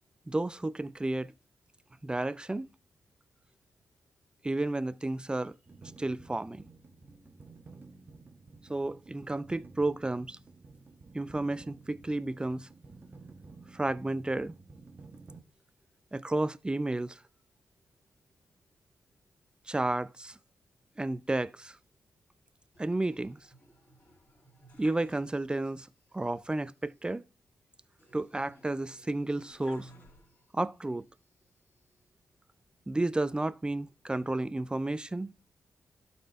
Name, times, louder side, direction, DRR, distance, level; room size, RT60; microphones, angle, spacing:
voice 1, 0.3-1.3 2.0-2.7 4.4-5.6 6.0-6.6 8.7-10.4 11.1-12.7 13.7-14.5 16.1-17.2 19.7-20.3 21.0-21.8 22.8-23.4 24.8-25.9 26.1-27.2 28.1-29.9 30.5-31.0 32.9-35.3, right 2 dB, 15° right, 0.5 m, -32 dB
sound 1, 5.7-15.4, right 3 dB, 35° right, 1.1 m, -52 dB
sound 2, 22.7-25.8 26.1-26.2 28.0-30.7 31.3-32.1, equal, 30° left, 3.3 m, -59 dB
12.0 x 4.3 x 4.1 m
cardioid pair, 70°, 6 cm